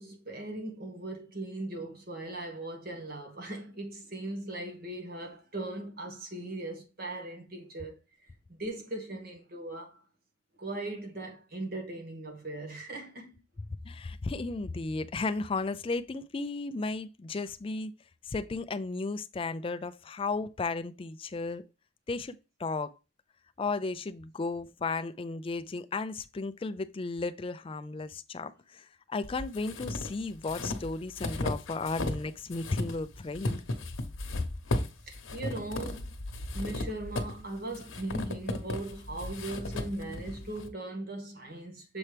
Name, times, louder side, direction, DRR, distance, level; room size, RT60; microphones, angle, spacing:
voice 1, 0.0-10.0 10.6-13.4 35.1-36.1 36.5-42.0, right 2 dB, 50° right, 1.5 m, -39 dB
voice 2, 13.8-17.9 18.2-21.6 22.1-22.9 23.6-33.6, left 3 dB, 25° left, 0.4 m, -34 dB
sound 1, 29.2-32.2 32.5-40.7, left 2 dB, 85° left, 1.0 m, -35 dB
7.0 x 4.3 x 3.3 m
head